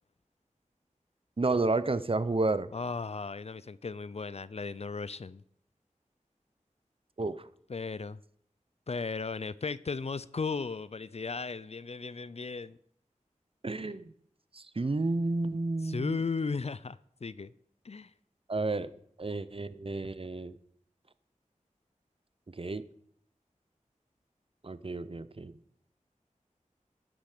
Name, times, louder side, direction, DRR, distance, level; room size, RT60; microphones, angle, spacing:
voice 1, 1.4-2.7 7.2-7.4 13.6-14.1 14.5-16.2 18.5-18.9 19.2-20.5 22.6-22.8 24.6-25.5, right 3 dB, 45° right, 0.6 m, -31 dB
voice 2, 2.7-5.4 7.7-8.2 8.9-12.8 13.8-13.9 15.8-17.5 17.8-18.1, left 4 dB, 50° left, 0.4 m, -36 dB
10.0 x 6.3 x 6.5 m
wide cardioid pair, 45°, 14 cm